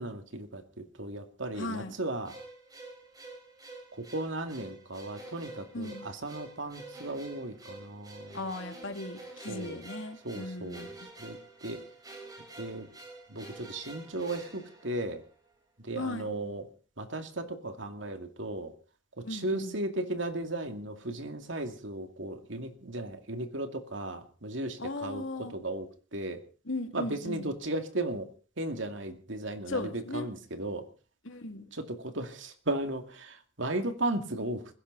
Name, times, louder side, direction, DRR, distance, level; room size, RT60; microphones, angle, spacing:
voice 1, 0.0-2.4 3.9-8.4 9.5-9.8 10.2-10.9 11.2-11.4 11.6-11.8 12.6-12.9 13.3-15.2 15.8-16.7 17.0-18.7 19.2-26.4 26.9-28.3 28.6-30.9 31.7-34.8, right 2 dB, 70° right, 7 dB, 2.5 m, -36 dB
voice 2, 1.6-1.9 5.7-6.1 8.3-10.9 16.0-16.4 19.2-19.7 24.8-25.5 26.7-27.5 29.7-30.3 31.2-31.7, left 2 dB, 75° left, 6 dB, 2.5 m, -37 dB
sound 1, 2.3-15.5, right 2 dB, 20° right, 5.3 m, -48 dB
20.5 x 16.5 x 4.1 m, 0.38 s
head